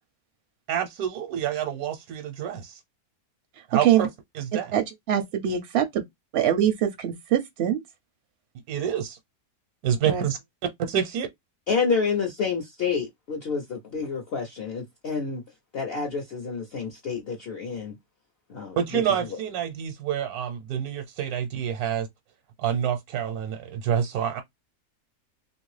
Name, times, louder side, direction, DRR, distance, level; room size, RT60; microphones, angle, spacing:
voice 1, 0.7-2.8 3.7-4.1 4.4-4.7 8.7-9.2 9.8-10.4 10.8-11.3 18.8-22.1 22.6-24.4, right 9 dB, 85° right, 1.1 m, -27 dB
voice 2, 4.7-5.8 6.3-7.8 10.1-10.2, right 10 dB, 65° right, 0.6 m, -23 dB
voice 3, 11.7-15.4 15.7-17.9 18.5-19.0, left 5 dB, 55° left, 0.7 m, -29 dB
2.8 x 2.5 x 3.1 m
omnidirectional pair, 1.5 m